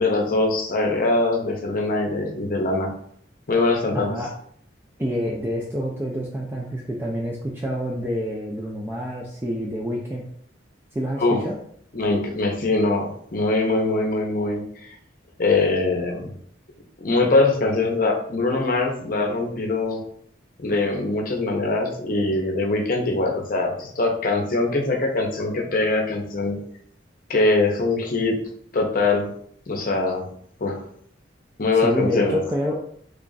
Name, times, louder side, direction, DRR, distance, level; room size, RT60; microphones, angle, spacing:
voice 1, 0.0-2.9 3.5-4.1 11.2-11.4 11.9-14.9 15.4-16.3 17.0-20.0 20.6-26.6 27.3-28.4 28.7-29.3 29.7-30.2 30.6-30.8 31.6-32.4, left 2 dB, 50° left, 2 dB, 0.7 m, -22 dB
voice 2, 3.9-4.3 5.0-10.2 10.9-11.6 31.8-32.8, equal, 15° right, -2 dB, 0.4 m, -27 dB
3.3 x 2.4 x 3.9 m, 0.63 s
head